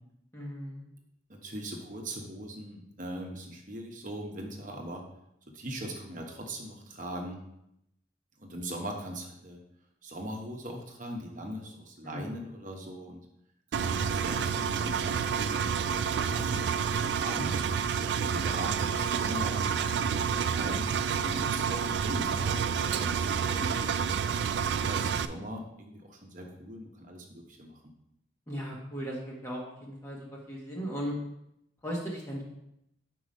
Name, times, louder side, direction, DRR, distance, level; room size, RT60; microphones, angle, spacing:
voice 1, 0.3-0.9 12.0-12.3 21.3-21.6 23.5-23.7 28.5-31.1 31.8-32.4, equal, 15° left, -4 dB, 1.2 m, -37 dB
voice 2, 1.3-5.0 5.5-7.4 8.4-9.6 10.0-13.2 13.7-15.8 16.2-17.6 18.2-20.9 21.2-23.9 24.6-27.8, right 1 dB, 45° right, 1 dB, 1.0 m, -41 dB
Engine, 13.7-25.2, right 6 dB, 65° right, 0.3 m, -29 dB
5.8 x 4.6 x 5.3 m, 0.81 s
head